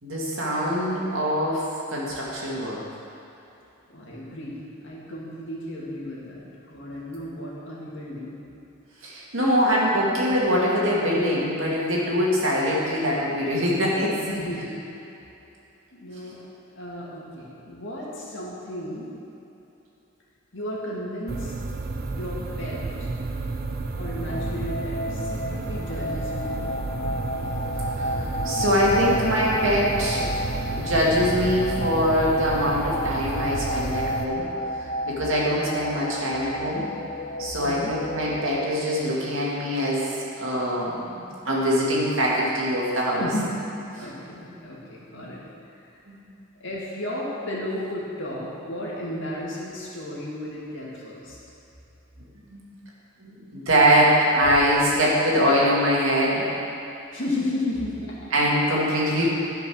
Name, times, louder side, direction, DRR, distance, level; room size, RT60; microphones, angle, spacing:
voice 1, 0.0-2.8 9.0-14.2 28.0-28.1 28.4-30.3 30.7-34.4 35.1-36.9 37.4-40.1 40.4-43.3 46.1-46.2 52.5-52.6 53.2-56.5 58.3-59.3, equal, 70° right, -5 dB, 2.2 m, -23 dB
voice 2, 3.9-8.4 14.2-14.7 15.9-16.4 16.7-19.1 20.5-21.5 22.1-23.1 23.9-26.8 27.7-28.8 37.6-37.9 43.2-43.5 43.9-45.4 45.8-45.9 46.6-51.4 57.1-58.2, left 1 dB, 60° left, -5 dB, 2.2 m, -34 dB
sound 1, 21.3-34.2, right 3 dB, 50° right, 0.6 m, -31 dB
sound 2, 24.2-38.7, left 1 dB, 45° left, 0.6 m, -32 dB
11.5 x 5.2 x 6.3 m, 2.9 s
head